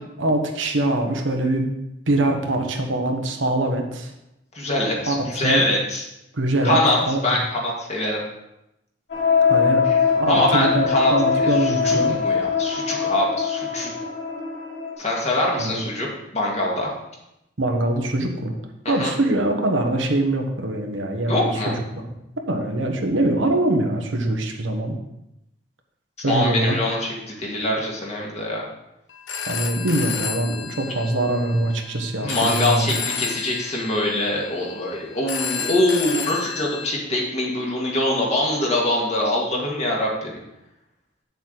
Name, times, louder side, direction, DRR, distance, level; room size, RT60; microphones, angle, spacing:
voice 1, 0.2-1.8 2.1-4.1 5.1-5.6 6.3-6.8 7.1-7.3 9.5-9.9 10.1-12.2 15.6-15.8 17.6-18.6 18.9-22.1 22.5-25.0 26.2-26.8 29.5-33.0, right 1 dB, 85° right, 3 dB, 1.2 m, -23 dB
voice 2, 4.5-6.1 6.6-7.0 7.2-8.2 9.9-10.0 10.3-13.9 15.0-16.1 16.3-16.9 18.9-19.1 21.3-21.7 26.3-28.6 32.2-40.4, left 1 dB, 35° left, -2 dB, 1.9 m, -23 dB
sound 1, 9.1-14.9, left 6 dB, 70° left, 2.8 m, -22 dB
Telephone, 29.1-36.9, left 6 dB, 85° left, 1.0 m, -32 dB
8.3 x 7.0 x 4.0 m, 0.89 s
head